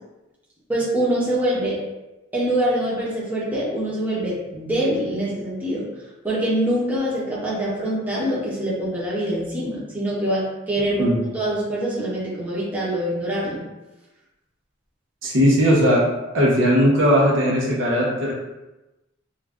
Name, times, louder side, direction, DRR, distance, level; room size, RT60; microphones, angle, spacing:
voice 1, 0.7-1.8 2.3-5.9 6.2-13.6, right 1 dB, 10° right, -7 dB, 0.6 m, -24 dB
voice 2, 15.2-16.1 16.3-18.3, equal, 75° right, -3 dB, 0.7 m, -18 dB
2.4 x 2.2 x 3.4 m, 1.0 s
head